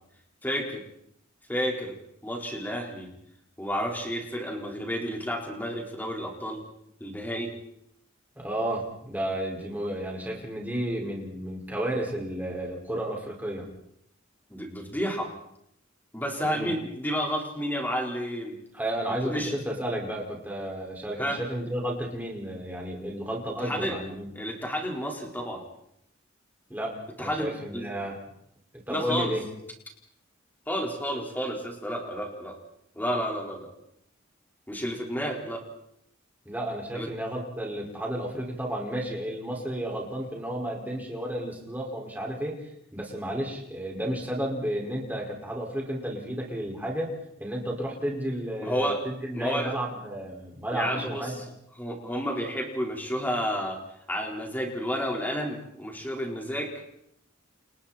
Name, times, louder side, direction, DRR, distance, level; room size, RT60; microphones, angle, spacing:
voice 1, 0.4-0.8 1.5-2.0 2.2-3.1 3.6-6.6 7.0-7.5 14.5-15.3 16.1-18.6 19.1-19.5 21.2-21.4 23.6-24.0 24.3-25.6 27.2-27.9 28.9-29.3 30.7-32.6 32.9-33.7 34.7-35.6 36.9-37.1 48.6-49.0 49.3-49.7 50.7-51.4 51.8-53.8 54.1-56.9, equal, 10° left, 0 dB, 4.6 m, -31 dB
voice 2, 8.4-13.7 16.4-16.7 18.7-24.3 26.7-28.2 28.9-29.4 36.5-42.6 42.9-51.4, right 1 dB, 10° right, -2 dB, 5.5 m, -32 dB
30.0 x 29.5 x 4.4 m, 0.75 s
head